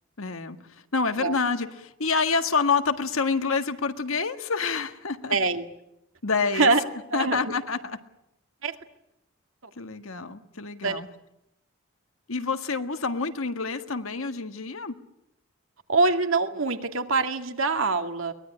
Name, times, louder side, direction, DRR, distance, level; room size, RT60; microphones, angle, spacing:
voice 1, 0.2-5.4 6.2-6.7 7.1-8.0 9.8-11.1 12.3-15.0, left 4 dB, 85° left, 8 dB, 1.7 m, -27 dB
voice 2, 5.3-5.6 6.5-6.8 7.1-7.4 8.6-8.8 10.8-11.0 15.9-18.3, right 3 dB, 75° right, 7 dB, 2.1 m, -24 dB
23.0 x 19.5 x 9.8 m, 0.84 s
head